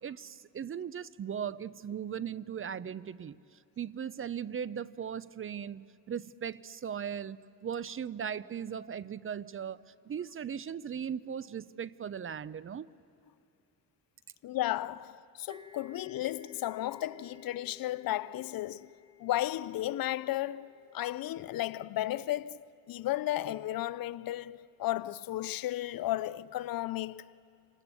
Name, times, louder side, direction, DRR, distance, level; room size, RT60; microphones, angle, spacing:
voice 1, 0.0-12.9, right 8 dB, 35° right, 0.5 m, -38 dB
voice 2, 14.4-18.9 19.2-22.6 22.9-27.2, left 14 dB, 65° left, 0.6 m, -34 dB
sound 1, 15.5-23.0, left 6 dB, 15° right, 1.2 m, -57 dB
28.0 x 19.5 x 8.3 m
supercardioid pair, 70°, 38 cm